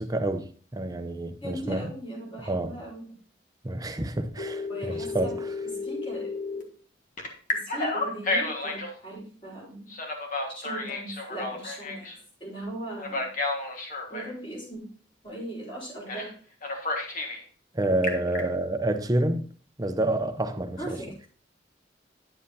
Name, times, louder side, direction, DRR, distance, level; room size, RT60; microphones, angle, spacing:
voice 1, 0.0-1.9 2.5-2.8 3.6-5.5 17.7-19.5 19.8-21.0, right 1 dB, 20° right, 0.7 m, -28 dB
voice 2, 1.4-3.2 4.7-5.3 5.7-6.6 7.5-9.9 10.3-12.1 12.4-13.3 14.1-14.8 15.2-16.3 20.8-21.1, right 1 dB, 30° left, 4.3 m, -39 dB
Telephone, 4.4-6.6 7.2-8.9 9.9-12.2 13.0-14.3 16.1-16.3 16.6-17.4 17.8-18.4, left 3 dB, 45° left, 1.6 m, -31 dB
9.9 x 7.4 x 2.7 m
head